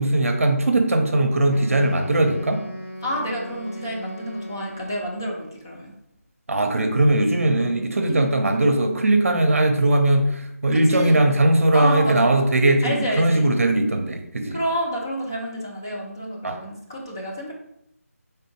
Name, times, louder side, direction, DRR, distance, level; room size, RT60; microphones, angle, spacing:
voice 1, 0.0-2.6 6.5-14.6 16.4-16.6, right 1 dB, 60° right, 5 dB, 0.7 m, -19 dB
Wind instrument woodwind instrument, 1.5-5.6, equal, 55° left, 0.9 m, -38 dB
voice 2, 3.0-5.9 8.1-8.3 10.7-11.2 11.7-12.3 12.8-13.5 14.5-17.5, equal, 15° left, -2 dB, 0.3 m, -29 dB
3.5 x 3.4 x 2.9 m, 0.78 s
figure-of-eight pair, 165°, 8 cm